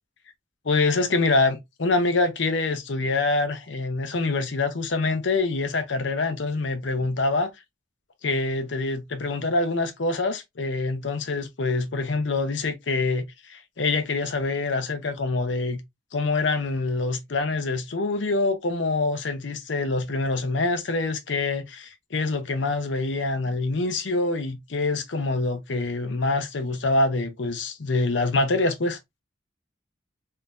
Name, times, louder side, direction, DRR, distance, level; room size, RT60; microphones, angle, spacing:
voice 1, 0.6-7.5 8.2-15.8 16.1-29.0, left 3 dB, 80° left, 0.7 m, -25 dB
3.7 x 2.7 x 2.4 m
head